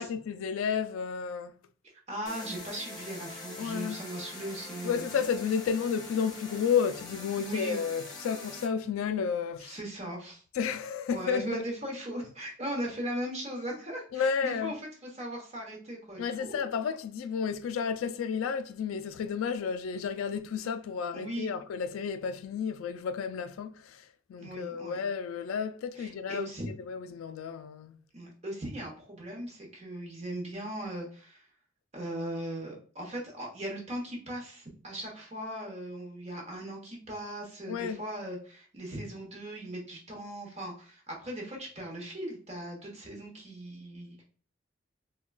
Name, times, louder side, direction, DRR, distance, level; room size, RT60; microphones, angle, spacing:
voice 1, 0.0-1.5 3.6-4.0 4.8-9.8 10.5-11.6 14.1-14.8 16.2-28.0 37.7-38.0, left 6 dB, 80° left, 0.3 m, -32 dB
voice 2, 2.1-5.1 7.4-7.8 9.6-10.4 11.1-14.7 15.0-16.6 21.1-21.5 24.4-25.0 26.0-26.7 28.1-31.5 31.9-44.2, right 1 dB, 30° right, 0.9 m, -38 dB
sound 1, 2.3-8.7, left 2 dB, 20° left, 0.7 m, -44 dB
3.7 x 2.2 x 2.2 m
head